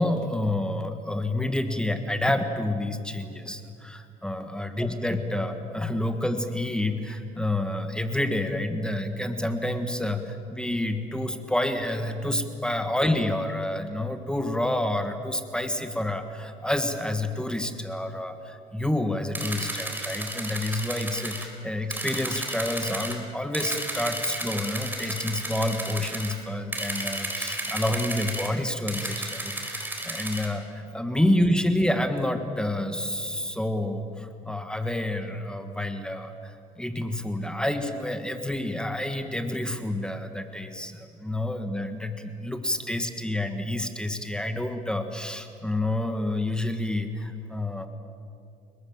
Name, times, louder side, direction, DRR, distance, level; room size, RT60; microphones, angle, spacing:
voice 1, 0.0-47.9, left 1 dB, 5° left, 7 dB, 1.7 m, -28 dB
sound 1, 19.3-21.5 21.9-23.2 23.5-26.4 26.7-28.5 28.9-30.5, right 1 dB, 10° right, 4.2 m, -33 dB
30.0 x 20.0 x 7.4 m, 2.5 s
cardioid pair, 110°, 17 cm